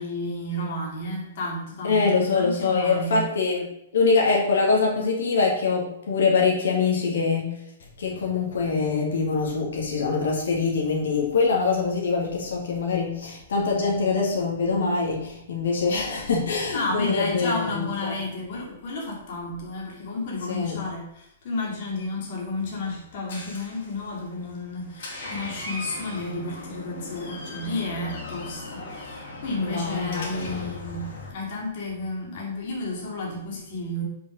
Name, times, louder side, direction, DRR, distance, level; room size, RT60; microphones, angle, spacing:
voice 1, 0.0-3.2 16.7-34.0, left 2 dB, 40° left, -2 dB, 2.4 m, -32 dB
voice 2, 1.8-3.7 3.9-7.5 8.0-18.2 20.5-20.9 29.6-30.8, left 4 dB, 85° left, -1 dB, 2.0 m, -24 dB
Door, 22.6-31.3, left 2 dB, 55° left, 2.5 m, -39 dB
5.5 x 5.1 x 6.3 m, 0.77 s
hypercardioid pair, 175°, 0 cm